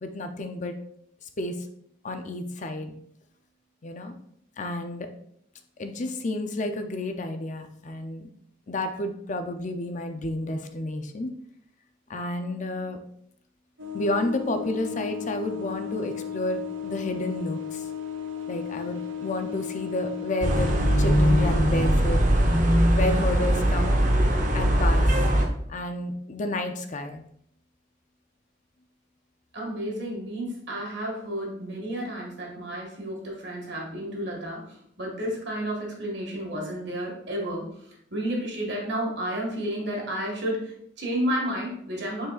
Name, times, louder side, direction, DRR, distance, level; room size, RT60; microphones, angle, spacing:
voice 1, 0.0-0.8 1.4-1.5 2.0-3.0 3.8-4.1 4.6-5.1 5.8-8.3 8.7-11.3 12.1-13.0 13.9-17.8 18.5-22.2 22.9-24.0 24.5-25.1 25.7-27.2, left 1 dB, 40° left, 7 dB, 0.5 m, -31 dB
sound 1, 13.8-21.6, left 8 dB, 85° right, 1.4 m, -35 dB
sound 2, 20.4-25.4, equal, 40° right, 0.8 m, -21 dB
voice 2, 29.5-42.3, equal, 60° right, -1 dB, 1.9 m, -31 dB
8.7 x 4.7 x 2.4 m, 0.70 s
head